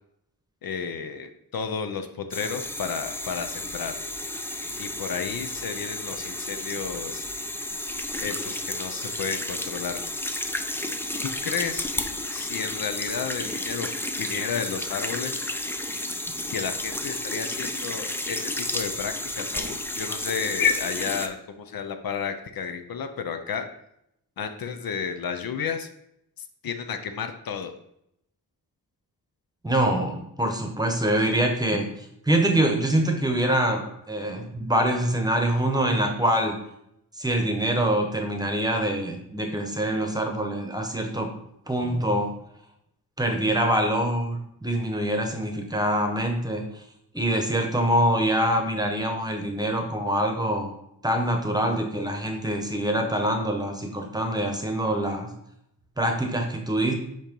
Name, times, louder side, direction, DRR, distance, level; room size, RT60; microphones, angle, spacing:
voice 1, 0.6-3.9 4.8-7.3 8.2-10.0 11.2-11.9 12.3-15.4 16.5-23.7 24.4-25.9 26.6-27.7, left 6 dB, 70° left, 7 dB, 0.7 m, -31 dB
washing hands in the sink, 2.3-21.3, left 1 dB, 5° left, 0.4 m, -32 dB
voice 2, 29.6-36.5 37.2-41.3 41.7-42.3 43.2-46.8 47.1-50.7 51.0-55.3 56.0-56.9, right 1 dB, 10° right, 3 dB, 0.9 m, -25 dB
7.5 x 3.0 x 5.3 m, 0.77 s
wide cardioid pair, 140°, 37 cm